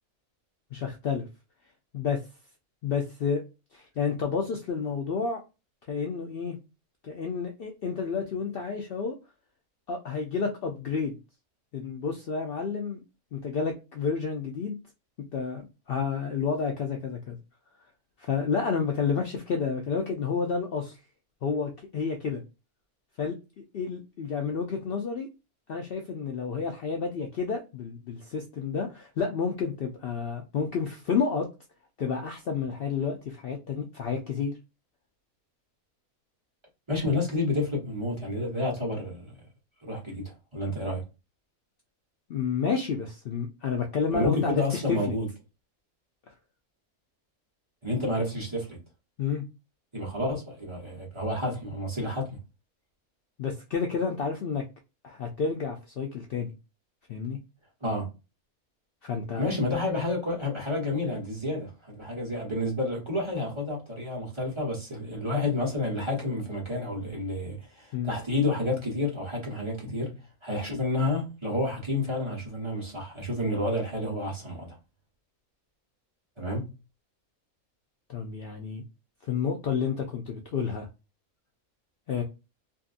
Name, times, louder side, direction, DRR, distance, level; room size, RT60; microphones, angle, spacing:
voice 1, 0.7-1.2 1.9-2.2 2.8-3.4 3.7-5.4 5.9-6.6 7.0-9.1 9.9-11.1 11.7-13.0 13.3-14.8 15.3-17.4 18.2-21.0 21.4-22.4 23.2-25.3 25.7-31.5 32.0-34.6 42.3-45.1 49.2-49.4 53.4-54.6 55.0-56.5 57.1-57.4 59.0-59.4 67.9-68.1 78.1-78.8 79.2-80.9 82.1-82.2, left 5 dB, 85° left, 0.5 m, -30 dB
voice 2, 36.9-39.5 39.8-41.0 44.1-45.3 47.8-48.8 49.9-52.4 57.8-58.1 59.4-70.1 70.4-74.8 76.4-76.7 82.2-82.3, left 2 dB, 25° right, 0.9 m, -30 dB
2.6 x 2.6 x 2.4 m
omnidirectional pair, 1.5 m